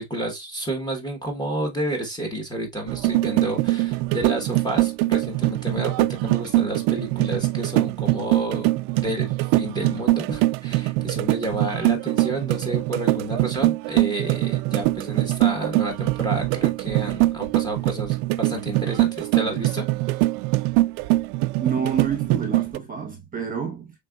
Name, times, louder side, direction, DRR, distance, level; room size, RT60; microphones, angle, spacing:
voice 1, 0.0-8.7 9.0-19.8, right 1 dB, 10° left, 1.2 m, -30 dB
sound 1, 2.9-22.8, right 19 dB, 85° right, 0.5 m, -23 dB
voice 2, 21.6-23.9, right 6 dB, 20° right, 1.0 m, -28 dB
5.2 x 3.8 x 2.3 m
cardioid pair, 155°, 47 cm